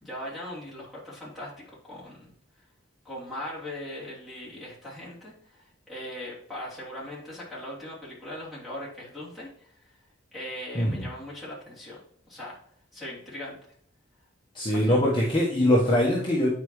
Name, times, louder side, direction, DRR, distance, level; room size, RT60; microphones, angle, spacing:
voice 1, 0.0-2.3 3.0-9.9 10.3-12.0 12.3-12.6 12.9-13.6 14.7-15.0, left 1 dB, ahead, -9 dB, 3.1 m, -39 dB
voice 2, 14.5-16.5, left 1 dB, 25° left, -6 dB, 1.3 m, -22 dB
9.3 x 4.7 x 3.2 m, 0.63 s
head